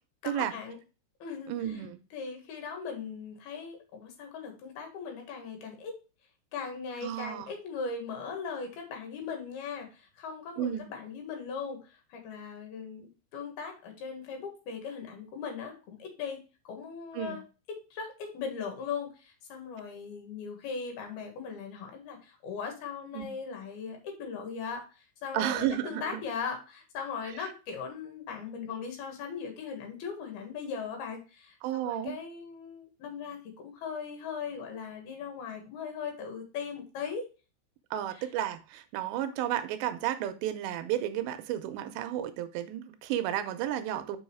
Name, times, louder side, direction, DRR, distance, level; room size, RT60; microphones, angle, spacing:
voice 1, 0.2-0.8 1.2-1.8 2.1-6.0 6.5-17.4 17.9-37.3 38.1-38.3, left 5 dB, 65° left, 3 dB, 3.4 m, -39 dB
voice 2, 1.5-2.0 7.0-7.5 10.6-10.8 17.1-17.4 23.1-23.3 25.3-26.2 27.4-27.5 31.6-32.2 37.9-44.2, right 11 dB, 90° right, 10 dB, 2.9 m, -32 dB
6.4 x 5.4 x 4.5 m, 0.32 s
omnidirectional pair, 5.1 m